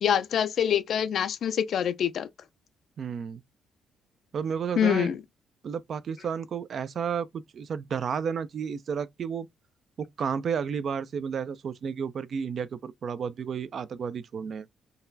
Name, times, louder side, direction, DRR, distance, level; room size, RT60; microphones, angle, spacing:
voice 1, 0.0-2.3 4.8-5.2, left 9 dB, 65° left, 0.4 m, -25 dB
voice 2, 3.0-3.4 4.3-5.1 5.6-9.5 10.0-14.7, right 7 dB, 55° right, 0.4 m, -32 dB
3.8 x 2.2 x 2.6 m
cardioid pair, 90°, 0 cm